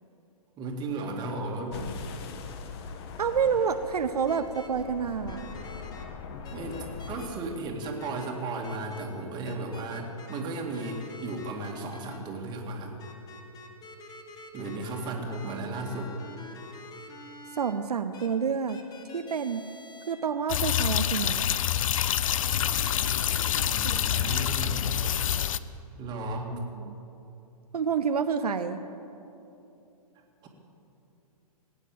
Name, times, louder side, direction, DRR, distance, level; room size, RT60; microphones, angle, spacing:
voice 1, 0.6-1.9 6.5-12.9 14.5-16.1 23.6-24.8 26.0-26.6 30.4-30.5, right 2 dB, 20° right, 1 dB, 2.0 m, -35 dB
sound 1, 1.7-7.3, left 5 dB, 40° left, 1.1 m, -41 dB
voice 2, 3.2-5.5 17.5-18.8 19.1-19.6 20.1-21.5 23.8-24.0 24.3-24.4 26.5-26.9 27.7-28.8, right 6 dB, 80° right, 8 dB, 0.8 m, -28 dB
sound 2, 4.3-4.7 5.3-6.0 6.4-7.3 7.8-8.3 8.6-9.0 9.4-10.4 10.7-12.2 13.0-17.7 18.1-18.3 18.7-20.1, left 3 dB, 20° left, 1.3 m, -47 dB
sound 3, 20.5-25.6, left 10 dB, 60° left, 0.5 m, -26 dB
19.0 x 9.0 x 7.6 m, 2.9 s
hypercardioid pair, 130°, 20 cm